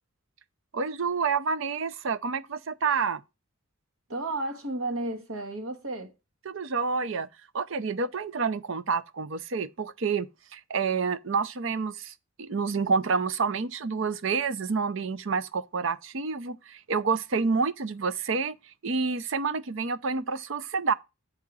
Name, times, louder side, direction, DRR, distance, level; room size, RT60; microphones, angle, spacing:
voice 1, 0.7-3.2 6.5-7.3 7.5-10.3 10.5-18.6 18.8-20.9, right 5 dB, 60° right, 0.6 m, -28 dB
voice 2, 4.1-6.1, right 2 dB, 80° right, 1.6 m, -32 dB
6.6 x 4.8 x 6.1 m
head